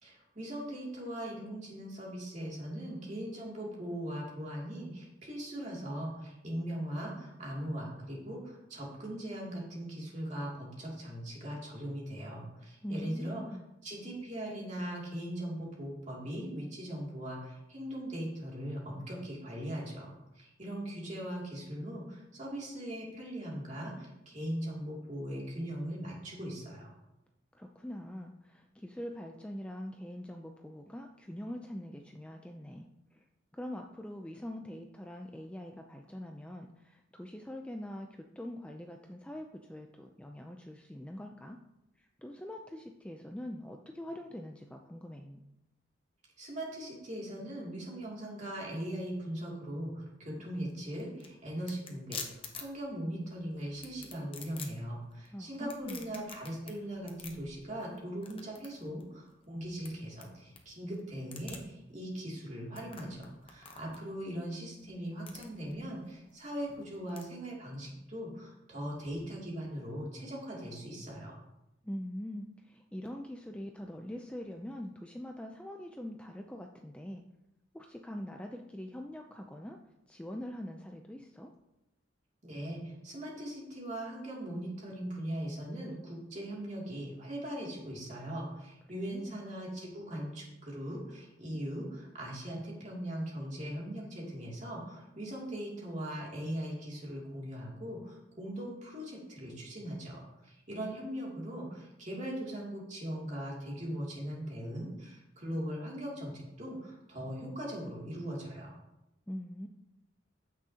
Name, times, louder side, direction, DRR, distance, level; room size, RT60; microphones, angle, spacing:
voice 1, 0.0-13.4 13.8-26.9 46.4-71.4 82.4-108.7, right 1 dB, 35° right, -3 dB, 2.6 m, -40 dB
voice 2, 12.8-13.7 27.5-33.3 33.5-41.6 42.0-45.4 55.3-56.1 71.8-77.2 77.7-79.8 80.1-81.5 88.9-89.4 109.3-109.7, left 1 dB, 5° left, 3 dB, 0.4 m, -43 dB
sound 1, 50.6-67.2, left 5 dB, 25° left, 0.9 m, -49 dB
14.5 x 6.2 x 2.8 m, 0.92 s
head